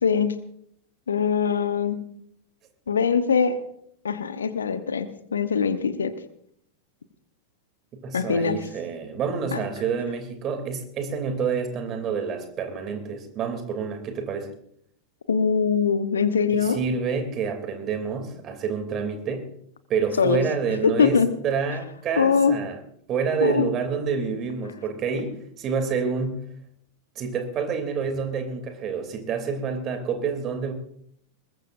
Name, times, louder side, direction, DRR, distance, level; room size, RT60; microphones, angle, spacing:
voice 1, 0.0-0.3 1.1-2.0 2.9-3.6 4.0-6.1 8.1-8.7 9.5-9.6 15.3-16.8 20.2-20.4 20.8-21.3 22.2-22.6 23.4-23.7, left 6 dB, 70° left, 11 dB, 1.1 m, -22 dB
voice 2, 8.0-14.5 16.5-19.5 19.9-21.2 21.4-22.8 23.1-26.5 27.1-30.7, right 6 dB, 30° right, 6 dB, 3.0 m, -28 dB
22.0 x 20.0 x 2.6 m, 0.69 s
figure-of-eight pair, 90°, 0 cm